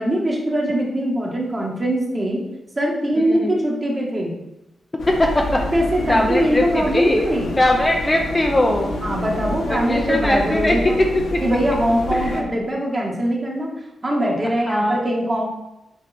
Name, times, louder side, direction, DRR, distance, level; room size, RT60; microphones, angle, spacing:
voice 1, 0.0-2.4 2.8-4.3 5.5-7.5 9.0-11.0 11.4-13.7 14.0-15.5, equal, 25° right, -2 dB, 1.8 m, -22 dB
sound 1, 5.0-12.4, left 2 dB, 80° left, 1.2 m, -29 dB
voice 2, 5.1-5.6 6.1-7.2 7.6-8.9 9.7-11.2 12.1-12.4 14.6-15.0, left 1 dB, 15° left, 2 dB, 0.6 m, -20 dB
8.1 x 4.7 x 4.3 m, 0.91 s
wide cardioid pair, 145°, 0 cm